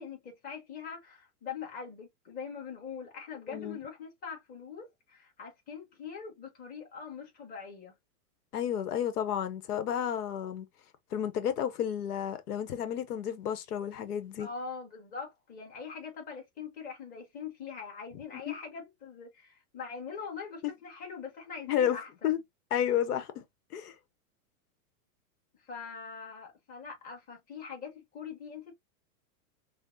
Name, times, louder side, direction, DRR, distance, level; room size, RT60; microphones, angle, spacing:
voice 1, 0.0-8.0 14.4-22.4 25.6-28.7, left 6 dB, 20° left, 1.3 m, -43 dB
voice 2, 8.5-10.7 11.1-14.5 18.3-18.5 21.7-22.0 22.2-22.4 22.7-23.4 23.7-23.9, left 9 dB, 85° left, 0.9 m, -31 dB
5.6 x 2.0 x 2.6 m
supercardioid pair, 155°, 45 cm